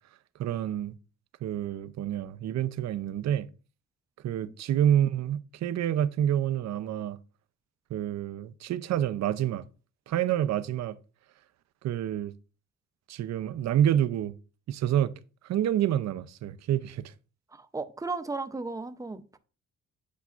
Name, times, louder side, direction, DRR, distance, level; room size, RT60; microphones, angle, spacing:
voice 1, 0.4-1.0 1.4-3.5 4.2-7.2 7.9-9.6 10.1-11.0 11.8-12.3 13.1-14.3 14.7-15.1 15.4-17.1, right 10 dB, 60° right, 0.6 m, -28 dB
voice 2, 17.5-19.4, right 3 dB, 10° right, 0.6 m, -35 dB
8.3 x 5.5 x 2.5 m
cardioid pair, 90°, 30 cm